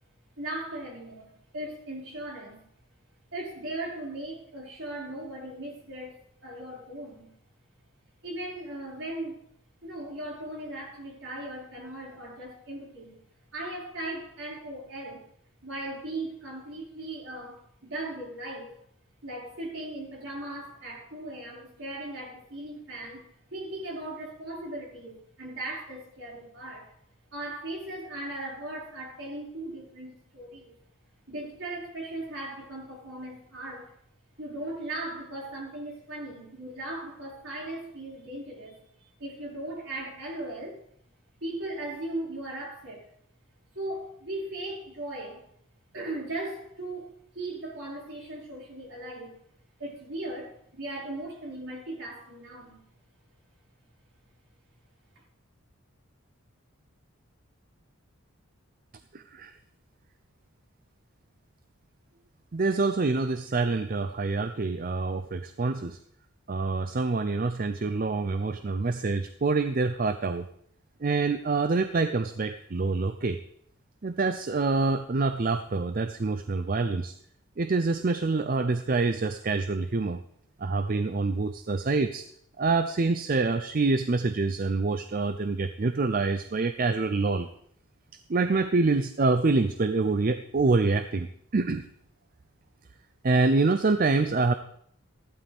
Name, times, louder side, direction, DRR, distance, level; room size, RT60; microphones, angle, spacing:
voice 1, 0.4-2.6 3.3-6.2 6.4-7.3 8.2-9.4 9.8-13.2 13.5-15.2 15.6-18.7 19.2-23.3 23.5-26.9 27.3-30.8 31.3-33.9 34.4-38.8 39.2-40.8 41.4-43.1 43.8-45.4 45.9-49.4 49.8-52.8, right 1 dB, 60° right, -4 dB, 5.5 m, -38 dB
voice 2, 59.1-59.5 62.5-66.0 66.5-70.5 71.0-73.4 74.0-77.2 77.6-80.2 80.6-82.2 82.6-87.5 88.3-91.3 91.5-91.8 93.2-94.5, right 3 dB, 40° right, 9 dB, 0.5 m, -26 dB
15.0 x 11.5 x 3.5 m, 0.66 s
head